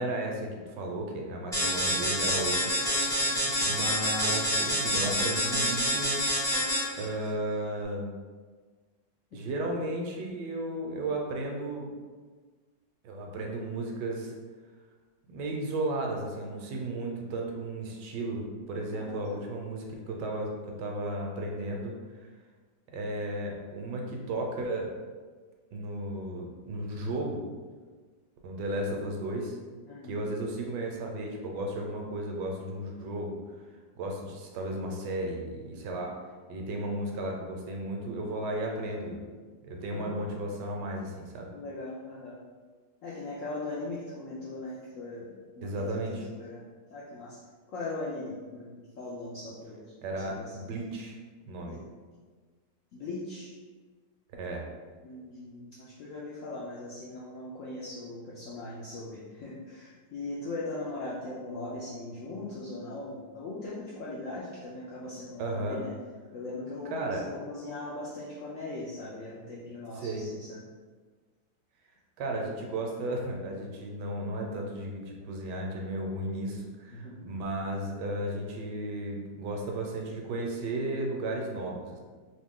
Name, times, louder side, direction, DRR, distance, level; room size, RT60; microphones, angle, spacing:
voice 1, 0.0-3.3 3.6-6.5 7.0-8.1 9.3-11.9 13.0-14.3 15.3-21.9 22.9-24.9 25.7-27.5 28.4-29.6 30.0-33.4 34.0-36.1 36.5-39.2 39.6-41.5 45.6-46.3 50.0-51.2 51.5-51.8 54.4-54.6 65.4-65.8 66.9-67.2 70.0-70.2 72.2-82.0, right 1 dB, 80° right, 1 dB, 1.2 m, -34 dB
sound 1, 1.5-7.1, equal, 5° left, 0.4 m, -27 dB
voice 2, 3.2-3.5 9.3-9.6 18.9-19.4 28.9-29.0 29.9-30.2 39.9-40.3 41.5-42.4 43.0-46.6 46.9-47.4 47.7-49.9 50.2-50.7 51.6-51.8 52.9-53.5 55.0-65.9 66.3-70.6 76.9-77.2, left 2 dB, 75° left, -6 dB, 0.7 m, -40 dB
3.0 x 2.7 x 3.6 m, 1.4 s
omnidirectional pair, 1.9 m